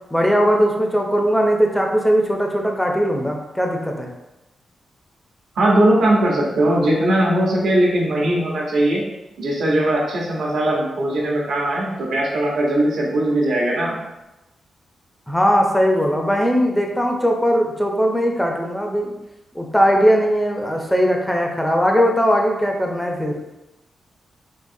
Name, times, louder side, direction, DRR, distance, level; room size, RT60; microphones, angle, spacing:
voice 1, 0.1-4.1 15.3-19.1 19.5-23.3, equal, 5° left, 1 dB, 0.5 m, -19 dB
voice 2, 5.6-9.0 9.4-14.0, right 1 dB, 85° right, -3 dB, 0.9 m, -19 dB
3.8 x 2.8 x 2.6 m, 0.97 s
wide cardioid pair, 120°, 0 cm